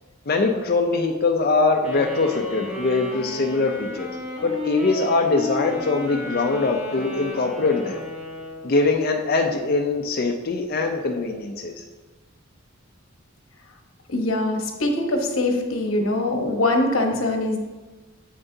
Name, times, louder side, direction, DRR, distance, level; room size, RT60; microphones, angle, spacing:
voice 1, 0.3-4.1 4.4-8.0 8.6-11.8, left 3 dB, 45° left, 2 dB, 0.5 m, -22 dB
Wind instrument woodwind instrument, 1.8-8.8, left 1 dB, 10° right, 1.9 m, -33 dB
voice 2, 14.1-17.6, left 2 dB, 85° left, 3 dB, 1.0 m, -23 dB
7.8 x 7.3 x 2.7 m, 1.2 s
head